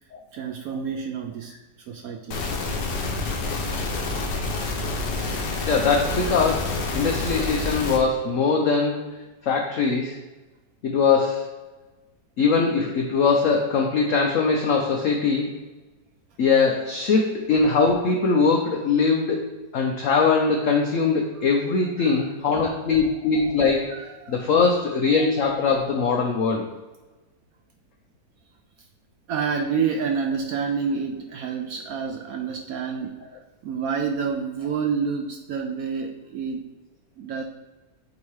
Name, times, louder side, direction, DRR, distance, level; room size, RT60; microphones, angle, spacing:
voice 1, 0.3-1.5 1.9-2.4 22.0-22.3 23.9-24.4 29.3-36.6 37.2-37.4, right 6 dB, 70° right, 4 dB, 0.9 m, -28 dB
sound 1, 2.3-8.0, left 3 dB, 80° left, 1.6 m, -28 dB
voice 2, 5.7-10.2 10.8-11.6 12.4-15.5 16.4-26.7, left 4 dB, 60° left, 1 dB, 0.9 m, -22 dB
8.0 x 2.8 x 4.8 m, 1.2 s
omnidirectional pair, 1.9 m